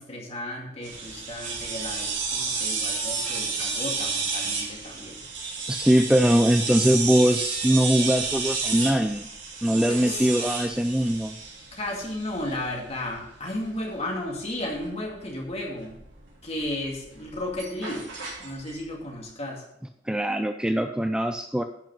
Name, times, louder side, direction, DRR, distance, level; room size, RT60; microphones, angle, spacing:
voice 1, 0.0-5.2 10.0-10.3 11.7-16.0 16.4-18.1 18.4-19.6, left 1 dB, 35° left, 0 dB, 2.3 m, -34 dB
sound 1, 0.8-18.9, right 4 dB, 85° right, 3.2 m, -32 dB
voice 2, 5.7-9.3 9.6-11.4 20.1-21.6, equal, 5° right, 7 dB, 0.4 m, -22 dB
10.5 x 5.8 x 5.3 m, 0.75 s
head